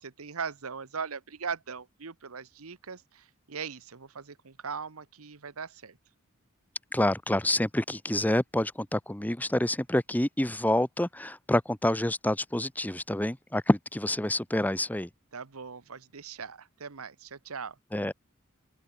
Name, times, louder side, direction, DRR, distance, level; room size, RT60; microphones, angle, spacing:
voice 1, 0.0-6.0 15.3-17.8, right 6 dB, 75° right, 1.1 m, -39 dB
voice 2, 6.9-15.1 17.9-18.1, left 1 dB, 10° left, 1.0 m, -27 dB
open air
head